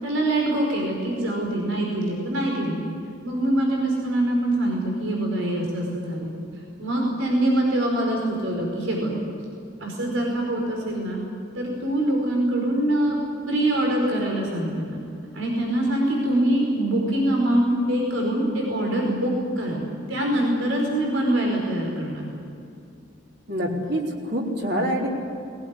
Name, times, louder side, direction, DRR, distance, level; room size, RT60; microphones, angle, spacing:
voice 1, 0.0-2.8 3.2-6.3 6.8-9.1 9.8-11.2 11.5-13.2 13.5-15.0 15.3-19.8 20.1-22.3, right 1 dB, 85° right, 0 dB, 5.0 m, -24 dB
voice 2, 23.5-25.1, equal, 55° right, -1 dB, 3.9 m, -26 dB
21.5 x 19.5 x 9.8 m, 2.5 s
head